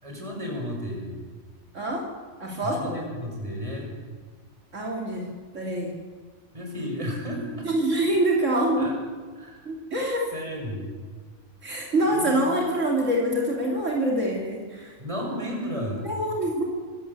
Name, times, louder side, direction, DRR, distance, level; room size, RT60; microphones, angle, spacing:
voice 1, 0.0-1.1 2.6-3.9 6.5-7.7 8.8-8.9 9.4-9.7 10.3-10.9 12.1-12.5 15.0-16.1, equal, 25° right, -1 dB, 6.2 m, -33 dB
voice 2, 1.7-2.1 2.4-3.0 4.7-6.0 7.6-8.9 9.7-10.3 11.6-14.9 16.0-16.7, right 1 dB, 70° right, -1 dB, 3.2 m, -25 dB
24.5 x 14.0 x 8.2 m, 1.5 s
omnidirectional pair, 1.3 m